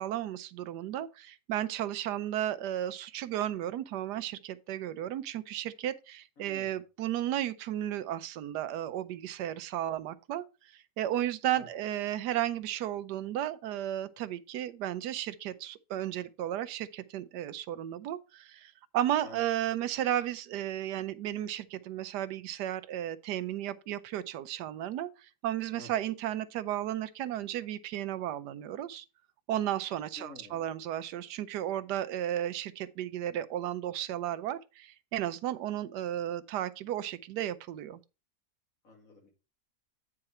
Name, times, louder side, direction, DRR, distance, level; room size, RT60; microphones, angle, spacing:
voice 1, 0.0-10.4 10.7-29.0 29.5-38.0, right 12 dB, 80° right, 1.2 m, -34 dB
voice 2, 6.4-6.8 11.5-11.7 19.2-19.4 25.8-25.9 30.2-30.7 38.8-39.3, left 1 dB, 55° left, 2.4 m, -50 dB
8.8 x 4.9 x 4.2 m
omnidirectional pair, 1.8 m